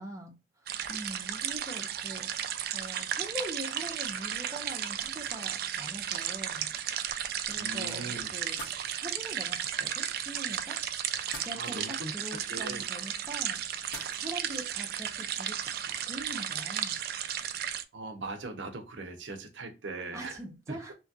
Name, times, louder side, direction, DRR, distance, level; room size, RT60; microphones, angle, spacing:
voice 1, 0.0-2.3 2.7-6.7 7.5-8.6 9.0-10.8 11.4-13.6 14.2-17.0 20.1-20.9, right 1 dB, 15° right, 0.7 m, -43 dB
sound 1, 0.7-17.8, right 10 dB, 55° right, 0.3 m, -34 dB
voice 2, 7.5-8.3 11.6-12.1 12.5-12.9 17.9-20.4 20.7-20.8, right 2 dB, 80° right, 0.7 m, -40 dB
sound 2, 8.4-16.8, left 2 dB, 80° left, 1.3 m, -53 dB
2.9 x 2.4 x 2.7 m
head